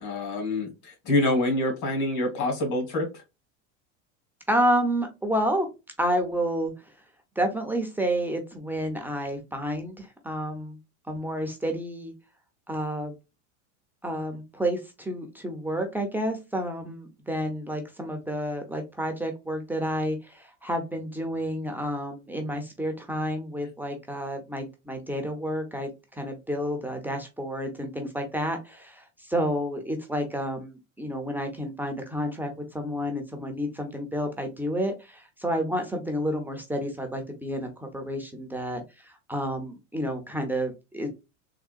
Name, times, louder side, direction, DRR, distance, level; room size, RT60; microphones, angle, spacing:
voice 1, 0.0-3.1, left 2 dB, 50° left, 3 dB, 1.7 m, -26 dB
voice 2, 4.5-5.7 6.0-6.7 7.4-10.8 11.1-12.1 12.7-13.1 14.0-41.1, equal, 5° right, 3 dB, 0.5 m, -30 dB
3.7 x 2.1 x 2.4 m, 0.25 s
supercardioid pair, 115°, 37 cm